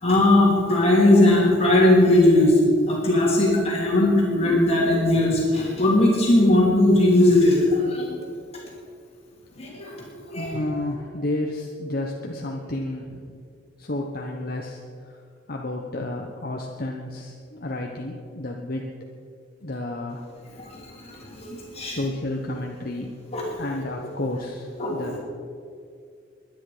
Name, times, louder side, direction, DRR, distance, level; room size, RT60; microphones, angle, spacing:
voice 1, 0.0-2.6 2.9-8.2 9.6-10.6 20.6-22.0 23.3-23.5 24.8-25.1, left 1 dB, 35° left, -4 dB, 2.9 m, -19 dB
voice 2, 10.3-13.2 13.8-15.1 15.5-18.9 19.6-20.3 21.9-23.1 23.6-25.2, left 1 dB, 50° left, 1 dB, 1.1 m, -31 dB
22.5 x 10.0 x 5.0 m, 2.3 s
head